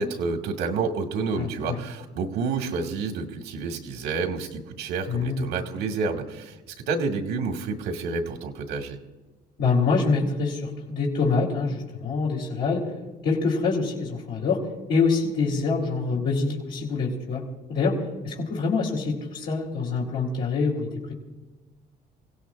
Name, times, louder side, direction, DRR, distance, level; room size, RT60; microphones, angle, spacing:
voice 1, 0.0-6.6 6.9-9.0, right 4 dB, 90° right, 3 dB, 1.9 m, -29 dB
voice 2, 1.4-1.8 5.1-5.5 9.6-12.8 13.2-14.6 14.9-17.4 17.7-18.0 18.2-21.1, left 4 dB, 75° left, -4 dB, 3.1 m, -25 dB
28.5 x 17.0 x 2.5 m, 1.2 s
cardioid pair, 110°, 17 cm